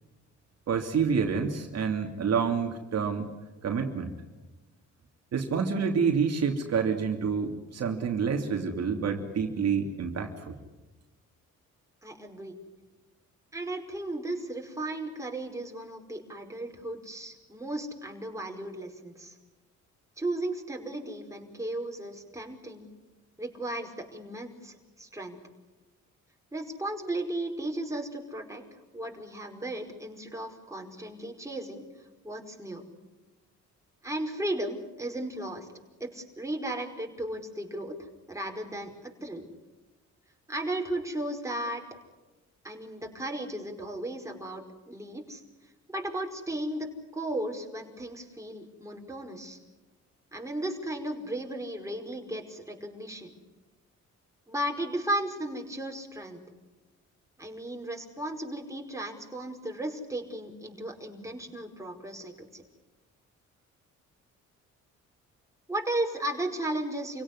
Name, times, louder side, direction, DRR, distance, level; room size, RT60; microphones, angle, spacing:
voice 1, 0.7-3.3 3.6-4.1 5.3-10.6, right 6 dB, 55° right, 3 dB, 2.8 m, -28 dB
voice 2, 12.0-12.6 13.5-19.4 20.2-22.9 23.4-25.4 26.5-31.8 32.2-32.8 34.0-35.7 36.0-39.5 40.5-41.8 42.6-45.4 45.9-49.6 50.3-53.3 54.5-56.4 57.4-62.6 65.7-67.2, right 1 dB, 10° right, 2 dB, 5.0 m, -35 dB
28.0 x 17.0 x 9.9 m, 1.2 s
cardioid pair, 90°, 30 cm